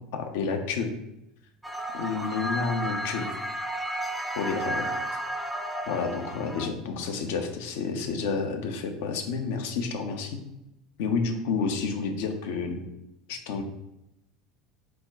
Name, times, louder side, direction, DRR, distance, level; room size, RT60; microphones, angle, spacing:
voice 1, 0.1-0.9 1.9-3.3 4.4-4.9 5.9-10.4 11.0-12.8 13.3-13.6, left 5 dB, 65° left, 5 dB, 0.6 m, -30 dB
sound 1, 1.6-6.7, right 1 dB, ahead, 0.5 m, -32 dB
4.9 x 2.2 x 3.5 m, 0.89 s
figure-of-eight pair, 70°, 0 cm